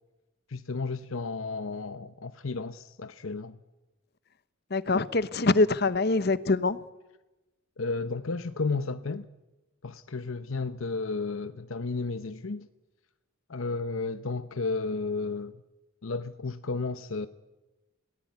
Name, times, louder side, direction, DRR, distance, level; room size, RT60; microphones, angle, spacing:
voice 1, 0.5-3.6 7.8-9.3 9.8-12.7 13.5-15.6 16.0-17.3, left 3 dB, 80° left, 0.9 m, -33 dB
voice 2, 4.7-6.8, left 3 dB, 50° left, 1.0 m, -24 dB
29.5 x 18.5 x 9.4 m
head